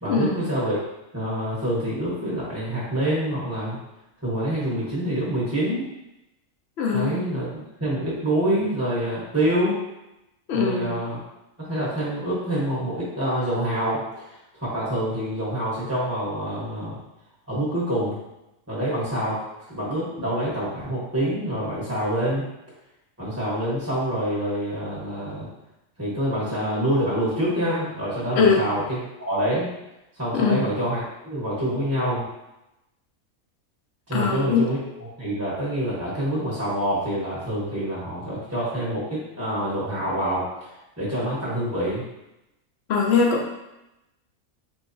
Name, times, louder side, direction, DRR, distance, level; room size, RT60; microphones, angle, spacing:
voice 1, 0.0-0.8 1.1-3.8 4.2-5.9 6.9-9.8 10.5-11.2 11.6-14.0 14.5-17.0 17.5-18.2 18.7-19.4 19.7-22.5 23.2-25.5 26.0-29.7 30.2-32.3 34.1-40.7 41.0-42.0, right 1 dB, 15° right, -8 dB, 0.8 m, -26 dB
voice 2, 6.8-7.2 10.5-10.9 28.4-28.6 30.3-30.7 34.1-34.6 42.9-43.5, left 5 dB, 65° left, 0 dB, 0.7 m, -21 dB
3.6 x 3.2 x 2.6 m, 0.91 s
omnidirectional pair, 1.5 m